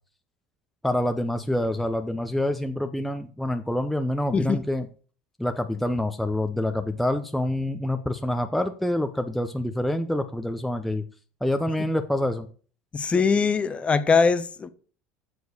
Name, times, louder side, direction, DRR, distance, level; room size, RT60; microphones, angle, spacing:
voice 1, 0.8-4.9 5.4-11.0 11.4-12.5, left 1 dB, ahead, 0.8 m, -26 dB
voice 2, 12.9-14.7, left 5 dB, 25° left, 1.0 m, -22 dB
7.2 x 6.4 x 6.5 m
supercardioid pair, 95°, 5 cm